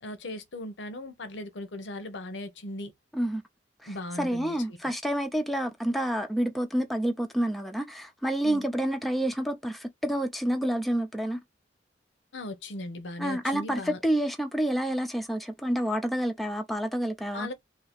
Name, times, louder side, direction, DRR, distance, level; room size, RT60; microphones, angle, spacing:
voice 1, 0.0-2.9 3.9-4.6 8.4-8.7 12.3-14.0 17.3-17.5, left 1 dB, 85° left, 0.9 m, -38 dB
voice 2, 4.2-11.4 13.2-17.5, right 1 dB, ahead, 0.5 m, -28 dB
2.8 x 2.7 x 4.3 m
head